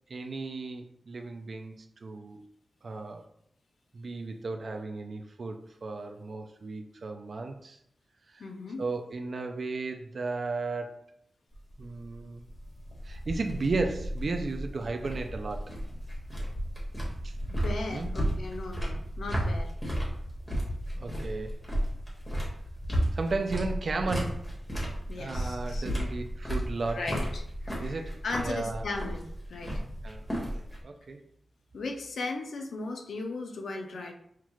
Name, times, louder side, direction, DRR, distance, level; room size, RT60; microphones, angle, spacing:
voice 1, 0.1-2.4 2.8-3.2 3.9-7.8 8.3-8.4 8.8-11.1 11.8-12.4 13.0-15.7 17.2-17.3 17.9-18.1 20.9-21.6 23.1-24.5 25.2-27.0 27.8-28.8 30.0-30.5 30.8-31.3, right 3 dB, 55° right, 5 dB, 0.4 m, -35 dB
voice 2, 8.4-8.8 17.5-19.7 25.1-25.9 26.9-29.7 31.7-34.1, left 3 dB, 80° left, 3 dB, 0.6 m, -37 dB
sound 1, 11.5-30.8, equal, 15° left, 1.3 m, -33 dB
5.8 x 2.4 x 3.1 m, 0.70 s
wide cardioid pair, 125°, 0 cm